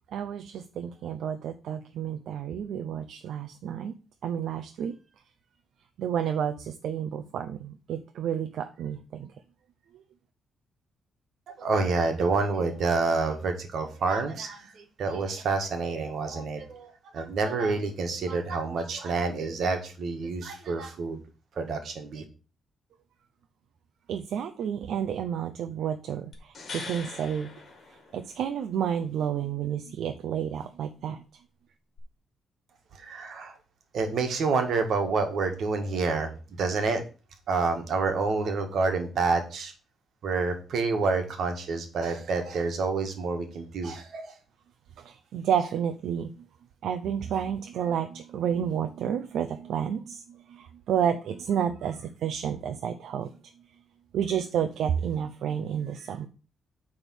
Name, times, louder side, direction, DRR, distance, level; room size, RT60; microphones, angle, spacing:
voice 1, 0.1-3.9 4.2-4.9 6.0-9.3 24.1-27.5 27.9-31.2 45.0-46.3 46.8-53.3 54.1-56.3, right 8 dB, 75° right, 7 dB, 0.6 m, -30 dB
voice 2, 11.5-16.9 17.1-21.2 21.6-22.2 33.0-33.6 33.9-36.3 36.6-37.0 37.5-39.7 40.2-44.3, right 4 dB, 55° right, 6 dB, 1.7 m, -28 dB
sound 1, 26.3-28.6 32.0-32.1, left 4 dB, 40° left, 2.1 m, -42 dB
9.1 x 3.6 x 6.3 m, 0.35 s
cardioid pair, 160°, 0 cm